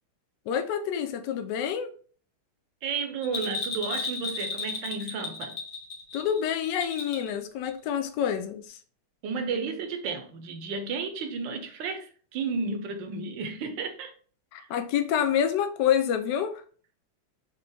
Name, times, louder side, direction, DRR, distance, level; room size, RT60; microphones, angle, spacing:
voice 1, 0.5-1.9 6.1-8.8 14.5-16.6, left 9 dB, 70° left, 1.1 m, -27 dB
voice 2, 2.8-5.6 9.2-14.1 14.6-14.7, right 4 dB, 70° right, 1.4 m, -32 dB
Bell, 3.2-7.3 7.6-7.7, left 4 dB, 40° left, 1.6 m, -34 dB
5.1 x 2.9 x 3.4 m
omnidirectional pair, 2.3 m